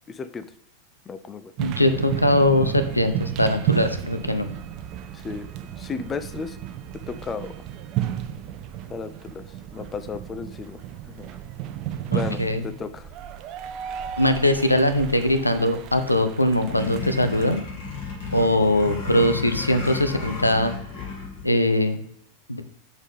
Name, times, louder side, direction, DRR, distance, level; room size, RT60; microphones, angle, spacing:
voice 1, 0.1-0.5 1.1-1.5 5.1-6.6 7.1-7.6 8.9-9.5 9.7-10.8 11.1-11.3 12.1-13.1, left 5 dB, 20° left, 12 dB, 0.4 m, -34 dB
voice 2, 1.6-4.5 12.1-12.6 14.2-17.6 18.3-20.7 21.4-22.0 22.5-22.6, left 1 dB, 85° left, 9 dB, 0.5 m, -21 dB
sound 1, 1.6-17.6, right 11 dB, 40° right, 0.5 m, -33 dB
sound 2, 16.7-21.4, left 4 dB, 55° left, 2.3 m, -33 dB
7.0 x 4.2 x 3.5 m, 0.68 s
figure-of-eight pair, 90°, 0 cm